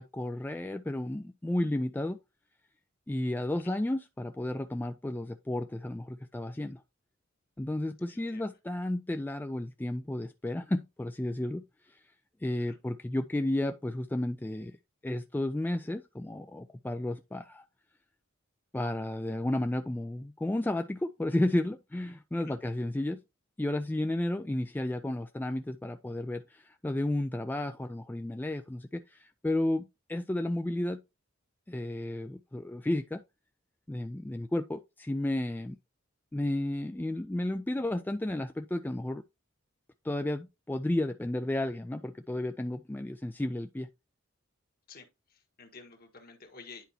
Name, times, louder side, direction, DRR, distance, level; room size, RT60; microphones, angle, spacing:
voice 1, 0.0-2.2 3.1-6.8 7.6-12.0 12.4-14.8 15.0-17.6 18.7-23.2 23.6-31.0 31.7-33.2 33.9-35.8 36.3-39.2 40.0-43.9, left 1 dB, 10° left, 0.3 m, -32 dB
voice 2, 8.1-8.5 12.7-12.8 22.3-22.6 44.9-46.8, left 4 dB, 50° left, 1.4 m, -51 dB
10.0 x 4.5 x 2.8 m
head